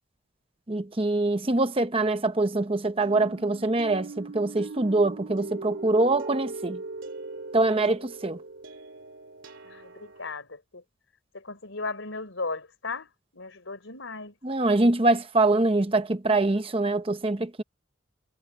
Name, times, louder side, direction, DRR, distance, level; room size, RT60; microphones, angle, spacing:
voice 1, 0.7-6.8 7.5-8.4 14.4-17.6, right 2 dB, 25° right, 0.8 m, -24 dB
sound 1, 3.0-10.3, right 3 dB, 65° right, 2.3 m, -40 dB
voice 2, 9.6-10.8 11.3-14.3, left 3 dB, 70° left, 3.9 m, -36 dB
head